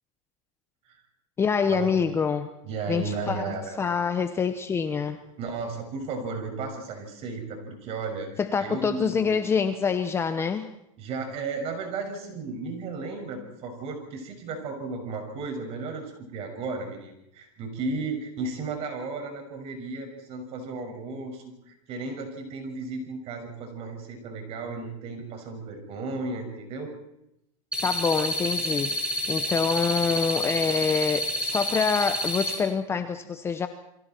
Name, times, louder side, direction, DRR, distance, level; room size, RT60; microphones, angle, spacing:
voice 1, 1.4-2.5 2.9-5.2 8.4-10.7 27.8-28.9 29.3-33.7, left 6 dB, 15° left, 9 dB, 0.9 m, -26 dB
voice 2, 2.6-3.8 5.4-8.3 8.6-9.3 11.0-26.9, right 3 dB, 35° right, 5 dB, 6.3 m, -34 dB
sound 1, 27.7-32.5, equal, 5° right, 6.1 m, -29 dB
29.5 x 23.0 x 4.5 m, 0.82 s
supercardioid pair, 150°, 18 cm